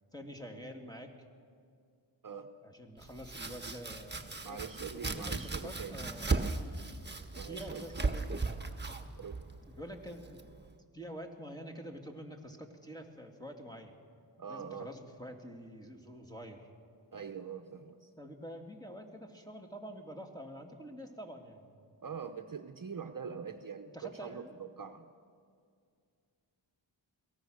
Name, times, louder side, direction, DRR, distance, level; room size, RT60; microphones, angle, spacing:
voice 1, 0.1-1.1 2.6-4.4 4.8-6.7 7.3-8.2 8.9-9.1 9.6-10.6 10.9-13.9 14.5-16.7 18.2-21.9 23.3-23.4 23.9-24.6, equal, 10° left, 3 dB, 2.7 m, -47 dB
Domestic sounds home sounds, 3.0-10.7, right 3 dB, 20° right, 1.5 m, -37 dB
voice 2, 4.4-6.0 7.3-7.8 9.2-9.5 14.4-14.9 17.1-18.1 22.0-24.4 24.8-25.1, right 6 dB, 45° right, 8 dB, 0.9 m, -43 dB
23.0 x 17.5 x 6.5 m, 2.2 s
cardioid pair, 55°, 48 cm